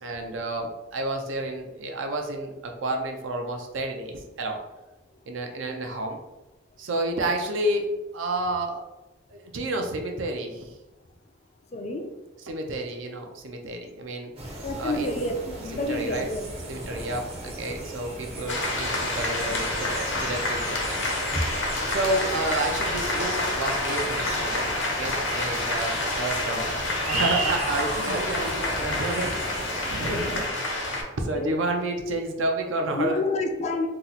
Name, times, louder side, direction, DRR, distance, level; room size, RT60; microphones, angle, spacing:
voice 1, 0.0-4.6 5.3-6.2 6.8-8.8 9.3-10.8 12.4-14.3 14.8-15.3 15.7-16.3 16.7-20.8 21.8-29.4 29.9-30.6 31.2-33.2, right 2 dB, 80° right, 3 dB, 0.5 m, -30 dB
voice 2, 11.7-12.0 14.6-16.4 16.8-16.9 28.0-28.2 29.2-29.5 30.2-30.4 31.3-31.6 33.0-33.9, left 2 dB, 35° left, 4 dB, 0.4 m, -29 dB
sound 1, 14.4-30.5, right 1 dB, 30° right, 0.5 m, -36 dB
sound 2, 18.5-31.0, left 2 dB, 70° left, 0.7 m, -28 dB
2.8 x 2.0 x 3.8 m, 1.0 s
head